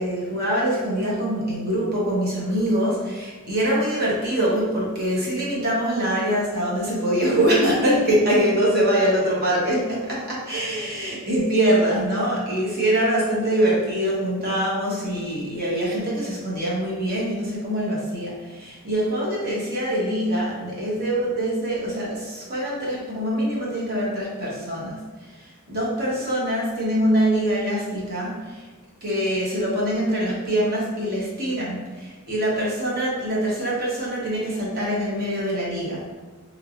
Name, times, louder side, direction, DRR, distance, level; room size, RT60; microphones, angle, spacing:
voice 1, 0.0-25.0 25.4-28.7 29.0-36.0, right 1 dB, 45° right, -5 dB, 1.1 m, -24 dB
3.3 x 3.0 x 2.5 m, 1.4 s
head